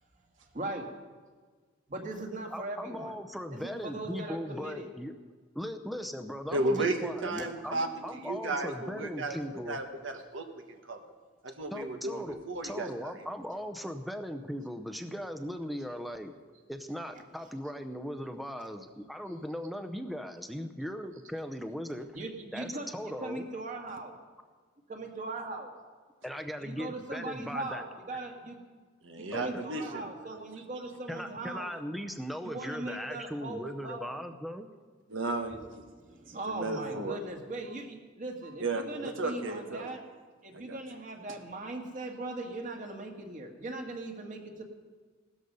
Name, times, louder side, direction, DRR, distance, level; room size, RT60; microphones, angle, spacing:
voice 1, 0.5-0.9 1.9-3.1 3.6-4.9 7.4-7.5 22.1-22.9 23.2-24.1 24.9-25.7 26.6-28.6 29.2-31.7 32.4-34.2 36.3-40.0 40.4-44.6, right 2 dB, 45° right, 3 dB, 1.9 m, -39 dB
voice 2, 2.5-5.1 5.5-9.8 11.7-16.3 16.7-22.1 22.5-23.5 26.2-27.8 29.3-29.6 31.1-34.7, equal, ahead, 7 dB, 0.6 m, -38 dB
voice 3, 6.5-7.9 8.1-9.4 9.6-11.0 11.4-13.1 29.0-30.6 35.1-35.8 36.3-37.2 38.4-40.0 40.5-40.8, right 2 dB, 90° right, 5 dB, 1.4 m, -34 dB
16.0 x 13.0 x 5.4 m, 1.5 s
head